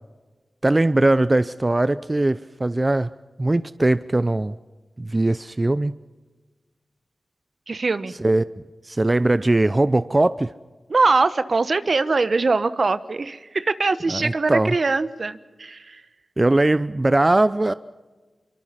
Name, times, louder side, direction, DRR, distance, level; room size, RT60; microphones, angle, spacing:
voice 1, 0.6-3.1 3.4-4.6 5.0-5.9 8.2-8.4 8.8-10.5 14.1-14.7 16.4-17.7, right 2 dB, 30° right, 14 dB, 0.7 m, -20 dB
voice 2, 7.7-8.1 10.9-16.0, right 3 dB, 60° right, 13 dB, 1.1 m, -22 dB
24.5 x 23.5 x 5.7 m, 1.3 s
cardioid pair, 45°, 0 cm